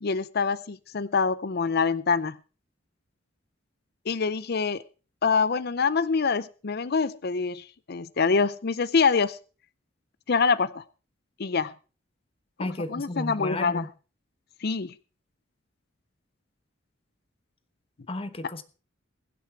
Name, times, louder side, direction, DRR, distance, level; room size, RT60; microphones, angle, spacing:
voice 1, 0.0-2.4 4.1-4.8 5.2-9.4 10.3-10.8 11.4-11.7 12.6-13.9 14.6-14.9, left 5 dB, 50° left, 17 dB, 0.6 m, -25 dB
voice 2, 12.6-13.9 18.1-18.6, left 1 dB, 30° left, 12 dB, 1.1 m, -33 dB
22.5 x 7.8 x 4.7 m, 0.36 s
head